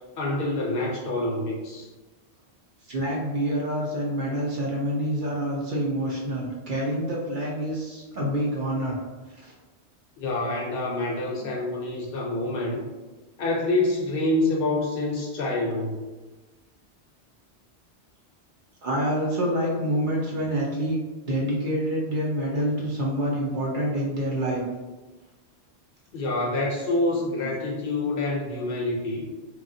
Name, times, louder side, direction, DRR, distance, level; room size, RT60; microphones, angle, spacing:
voice 1, 0.2-1.9 10.2-12.9 13.4-16.0 26.1-29.3, left 2 dB, 65° left, -2 dB, 0.7 m, -27 dB
voice 2, 2.9-9.0 9.4-9.5 11.4-11.5 18.8-21.0 21.3-24.6 27.4-27.5, equal, 55° right, -4 dB, 0.7 m, -27 dB
2.9 x 2.3 x 2.6 m, 1.2 s
omnidirectional pair, 1.1 m